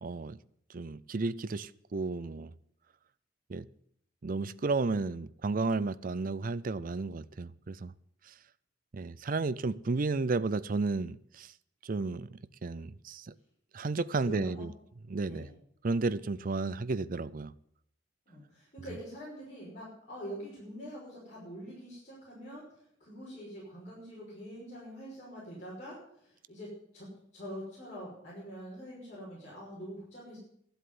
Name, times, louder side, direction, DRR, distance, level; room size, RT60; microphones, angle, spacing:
voice 1, 0.0-0.4 0.7-2.5 3.5-3.7 4.2-7.9 8.3-8.4 8.9-11.5 11.8-13.3 13.7-14.7 15.1-15.5 15.8-17.5, right 3 dB, 45° right, 0.5 m, -33 dB
voice 2, 14.2-14.6 15.2-15.5 18.3-22.6 23.0-27.1 27.3-30.4, equal, 40° left, 5.9 m, -44 dB
12.5 x 8.0 x 9.5 m
head